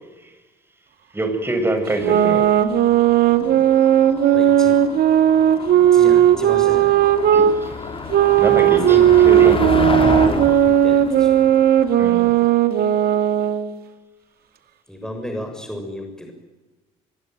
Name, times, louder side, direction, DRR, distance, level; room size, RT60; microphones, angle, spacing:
voice 1, 1.1-2.5 7.3-7.7 8.2-10.0 12.0-12.3, right 1 dB, 15° right, 7 dB, 7.2 m, -25 dB
sound 1, 1.9-7.5 8.1-13.7, right 11 dB, 60° right, 2.3 m, -15 dB
Motor vehicle (road), 2.1-12.4, left 3 dB, 30° left, 4.7 m, -29 dB
voice 2, 4.3-4.8 5.9-7.2 8.9-9.5 10.1-11.4 14.9-16.3, equal, 5° left, 4 dB, 6.9 m, -33 dB
25.0 x 22.0 x 9.4 m, 1.2 s
hypercardioid pair, 60°, 18 cm